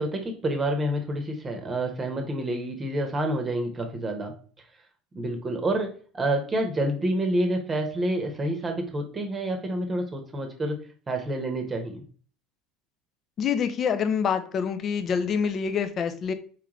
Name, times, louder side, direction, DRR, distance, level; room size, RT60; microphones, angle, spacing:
voice 1, 0.0-4.4 5.1-12.0, right 1 dB, 25° right, 4 dB, 1.0 m, -28 dB
voice 2, 13.4-16.3, left 7 dB, 40° left, 9 dB, 0.5 m, -26 dB
4.5 x 3.6 x 3.0 m, 0.42 s
figure-of-eight pair, 65°, 0 cm